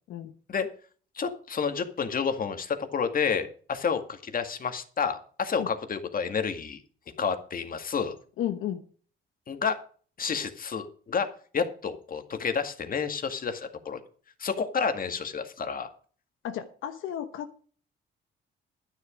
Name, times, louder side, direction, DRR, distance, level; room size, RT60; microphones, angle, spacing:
voice 1, 1.2-6.8 7.2-8.1 9.5-9.8 10.2-11.3 11.5-14.0 14.4-15.9, left 6 dB, 45° left, 8 dB, 2.0 m, -30 dB
voice 2, 8.4-8.8 16.4-17.5, left 10 dB, 85° left, 8 dB, 1.1 m, -33 dB
11.5 x 10.5 x 5.1 m, 0.43 s
cardioid pair, 90°, 20 cm